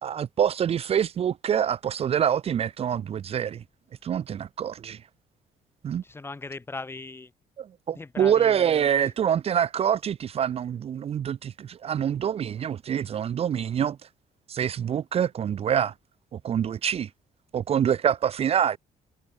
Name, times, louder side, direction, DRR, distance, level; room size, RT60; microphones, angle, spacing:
voice 1, 0.0-3.6 4.0-5.0 5.8-6.0 7.6-14.0 14.5-15.9 16.3-17.1 17.5-18.8, right 9 dB, 45° right, 0.9 m, -26 dB
voice 2, 6.0-7.3 7.9-9.1, left 3 dB, 15° left, 5.2 m, -39 dB
cardioid pair, 135°, 14 cm